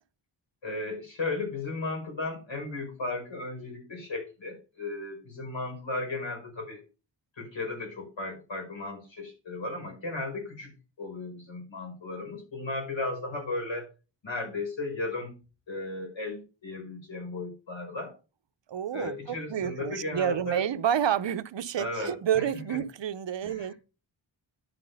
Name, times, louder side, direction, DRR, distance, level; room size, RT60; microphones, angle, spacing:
voice 1, 0.6-6.8 7.4-13.9 14.2-15.4 15.7-18.1 18.9-20.6 21.8-22.8 23.4-23.7, left 2 dB, 75° left, 5.7 m, -35 dB
voice 2, 18.7-23.7, right 9 dB, 70° right, 0.8 m, -29 dB
11.0 x 6.0 x 5.4 m
wide cardioid pair, 145°, 46 cm